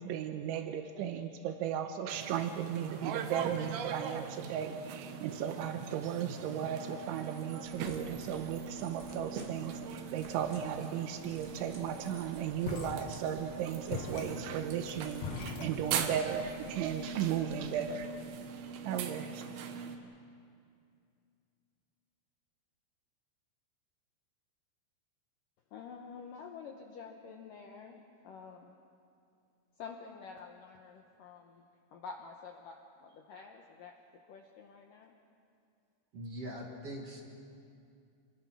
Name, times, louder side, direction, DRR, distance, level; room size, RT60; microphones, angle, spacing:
voice 1, 0.0-18.1 18.9-19.4, right 9 dB, 85° right, 7 dB, 3.2 m, -36 dB
sound 1, 2.1-20.0, right 6 dB, 65° right, 2.7 m, -41 dB
sound 2, 7.6-18.0, right 2 dB, 20° right, 2.7 m, -57 dB
sound 3, 12.6-13.5 13.9-16.3, left 4 dB, 60° left, 2.5 m, -41 dB
voice 2, 25.7-28.8 29.8-34.0 34.3-35.1, left 5 dB, 80° left, 2 dB, 1.9 m, -49 dB
voice 3, 36.1-37.2, equal, 45° right, -1 dB, 2.1 m, -42 dB
27.5 x 23.0 x 6.1 m, 2.4 s
omnidirectional pair, 5.4 m